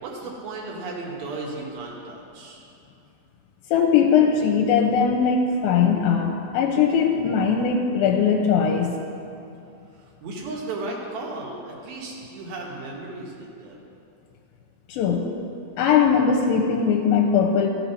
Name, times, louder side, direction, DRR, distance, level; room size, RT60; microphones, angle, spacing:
voice 1, 0.0-2.6 10.2-13.8, right 2 dB, 75° right, -3 dB, 3.0 m, -35 dB
voice 2, 3.7-9.0 14.9-15.3 15.8-17.7, left 6 dB, 85° left, 1 dB, 2.5 m, -20 dB
14.0 x 6.2 x 5.7 m, 2.6 s
omnidirectional pair, 4.3 m